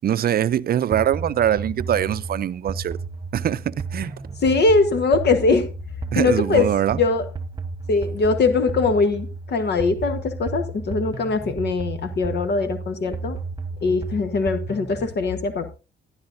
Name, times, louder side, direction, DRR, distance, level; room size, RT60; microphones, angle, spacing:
voice 1, 0.0-3.0 3.3-4.1 6.1-7.0, right 10 dB, 50° right, 0.5 m, -23 dB
sound 1, 0.9-15.1, right 3 dB, 20° right, 1.3 m, -33 dB
voice 2, 4.4-5.7 6.1-7.3 7.9-13.4 13.8-15.7, left 3 dB, 55° left, 1.2 m, -21 dB
12.5 x 11.5 x 2.6 m
cardioid pair, 90°, 20 cm